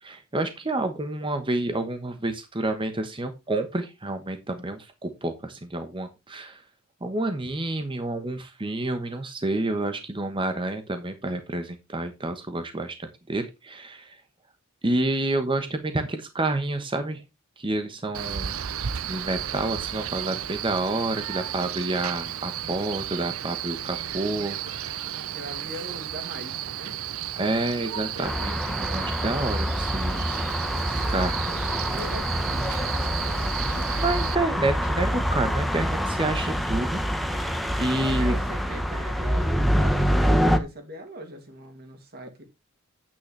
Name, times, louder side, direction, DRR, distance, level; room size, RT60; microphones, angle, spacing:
voice 1, 0.0-6.6 7.0-14.2 14.8-17.2 17.6-18.5 19.1-25.0 27.4-30.4 30.9-31.7 34.0-37.0 37.3-38.4, right 2 dB, 25° right, 1.1 m, -29 dB
Male speech man speaking, 18.1-34.3, right 10 dB, 80° right, 0.6 m, -33 dB
voice 2, 25.1-27.0 31.9-34.0 38.1-42.4, equal, 50° right, 2.5 m, -41 dB
sound 1, 28.2-40.6, equal, ahead, 1.1 m, -26 dB
9.4 x 8.7 x 3.3 m
head